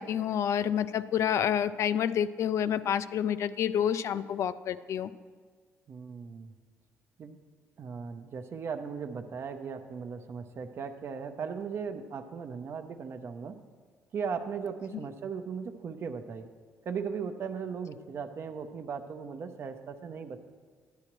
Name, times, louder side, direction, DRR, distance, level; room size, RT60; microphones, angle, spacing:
voice 1, 0.0-5.1, left 9 dB, 60° left, 14 dB, 0.3 m, -28 dB
voice 2, 5.9-6.5 7.2-7.4 7.8-13.6 14.1-16.5 16.9-20.4, right 6 dB, 50° right, 8 dB, 0.7 m, -37 dB
11.5 x 9.6 x 3.0 m, 1.5 s
cardioid pair, 115°, 6 cm